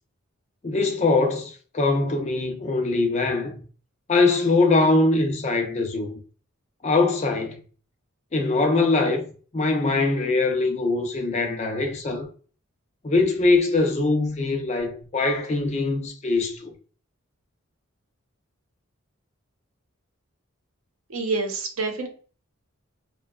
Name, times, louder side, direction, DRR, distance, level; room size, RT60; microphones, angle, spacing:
voice 1, 0.6-3.6 4.1-6.2 6.8-7.6 8.3-9.2 9.5-12.3 13.0-16.7, left 3 dB, 30° left, 0.4 m, -22 dB
voice 2, 21.1-22.1, right 3 dB, 85° right, 0.7 m, -27 dB
2.6 x 2.2 x 2.3 m
head